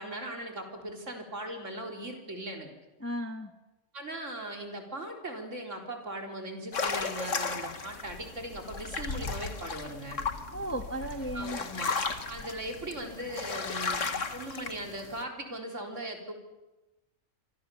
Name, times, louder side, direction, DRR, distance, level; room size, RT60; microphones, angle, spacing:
voice 1, 0.0-2.7 3.9-10.2 11.3-12.0 12.3-14.0 14.3-16.3, right 1 dB, 60° right, 3 dB, 4.2 m, -39 dB
voice 2, 3.0-3.5 10.5-11.6, right 1 dB, 10° left, 7 dB, 1.2 m, -35 dB
sound 1, 6.7-15.2, left 4 dB, 60° left, 1.9 m, -35 dB
26.5 x 25.0 x 7.0 m, 1.0 s
omnidirectional pair, 1.5 m